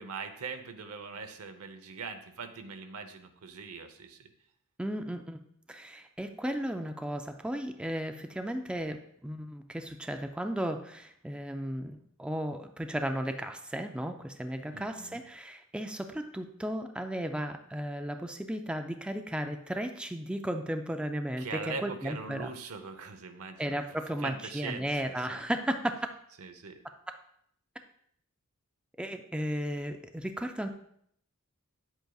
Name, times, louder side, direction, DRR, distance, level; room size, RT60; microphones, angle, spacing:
voice 1, 0.0-4.3 14.7-15.2 21.4-23.8 24.2-25.4 26.4-26.8, right 4 dB, 85° right, 7 dB, 0.8 m, -41 dB
voice 2, 4.8-5.4 5.7-22.5 23.6-26.0 29.0-30.7, equal, 5° right, 6 dB, 0.4 m, -35 dB
10.0 x 7.9 x 2.3 m, 0.70 s
head